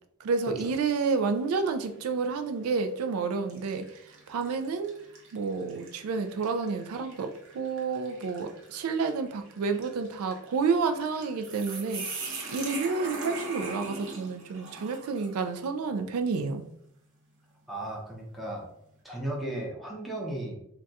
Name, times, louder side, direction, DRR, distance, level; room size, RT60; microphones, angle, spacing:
voice 1, 0.2-4.0 4.3-4.9 5.3-12.1 12.5-16.6, right 4 dB, 85° right, 8 dB, 0.3 m, -30 dB
sound 1, 0.6-1.0 1.6-1.7 2.6-2.9 3.5-15.5, right 3 dB, 65° right, 0.7 m, -42 dB
voice 2, 17.7-18.7 19.0-20.6, right 1 dB, ahead, -3 dB, 0.6 m, -35 dB
2.3 x 2.3 x 4.0 m, 0.75 s
head